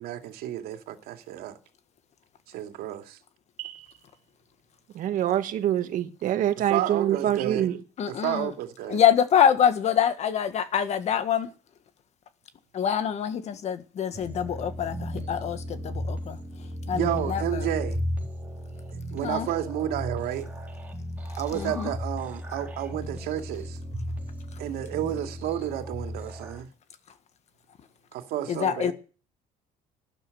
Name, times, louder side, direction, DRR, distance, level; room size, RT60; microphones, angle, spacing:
voice 1, 0.0-1.6 2.5-3.2 6.7-7.7 8.1-9.0 16.9-18.0 18.9-20.5 21.4-23.8 24.6-26.7 28.1-28.9, right 11 dB, 80° right, 2.5 m, -31 dB
voice 2, 4.9-7.8, right 11 dB, 55° right, 1.8 m, -25 dB
voice 3, 8.0-8.5 8.9-11.5 12.7-16.4 16.9-17.7 19.2-19.5 21.5-21.9 28.5-28.9, left 9 dB, 45° left, 1.6 m, -25 dB
sound 1, 14.1-26.6, equal, 10° right, 4.1 m, -35 dB
12.5 x 12.5 x 8.0 m
cardioid pair, 155°, 16 cm